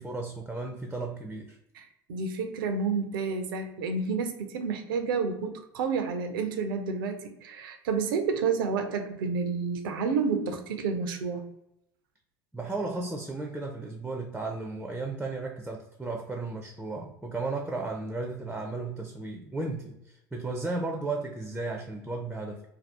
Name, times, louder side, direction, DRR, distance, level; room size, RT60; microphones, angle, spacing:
voice 1, 0.0-1.6 12.5-22.6, right 3 dB, 5° right, 2 dB, 0.5 m, -34 dB
voice 2, 1.8-11.4, right 5 dB, 70° right, 6 dB, 0.5 m, -30 dB
2.7 x 2.3 x 3.4 m, 0.82 s
hypercardioid pair, 70°, 12 cm